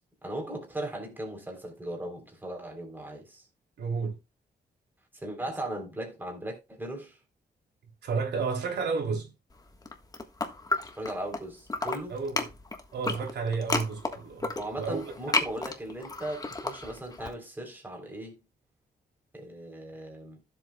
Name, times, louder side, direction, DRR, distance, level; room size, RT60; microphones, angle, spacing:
voice 1, 0.2-3.4 5.1-7.2 11.0-12.2 14.6-18.4 19.3-20.4, right 1 dB, 10° right, 3.7 m, -38 dB
voice 2, 3.8-4.2 8.0-9.3 12.1-12.5 12.9-14.5 14.8-15.4, right 4 dB, 90° right, 3.3 m, -31 dB
sound 1, 9.7-11.4 11.7-17.3, left 3 dB, 20° left, 1.5 m, -32 dB
15.5 x 7.8 x 2.3 m
wide cardioid pair, 135°, 17 cm